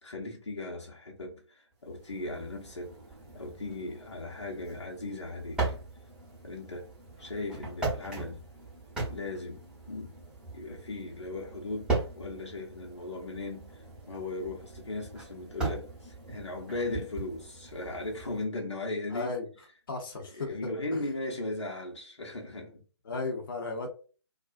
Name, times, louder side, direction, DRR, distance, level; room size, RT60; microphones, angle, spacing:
voice 1, 0.0-3.0 3.3-5.6 6.4-6.9 7.2-8.4 9.1-9.6 9.9-10.1 10.5-19.3 20.4-22.8, left 2 dB, 90° left, 0.9 m, -37 dB
sound 1, 1.9-18.4, right 3 dB, 5° right, 0.8 m, -39 dB
voice 2, 19.1-19.5 19.9-21.1 22.5-22.8 23.0-23.9, left 3 dB, 50° left, 0.7 m, -35 dB
2.4 x 2.1 x 2.5 m
figure-of-eight pair, 145°, 14 cm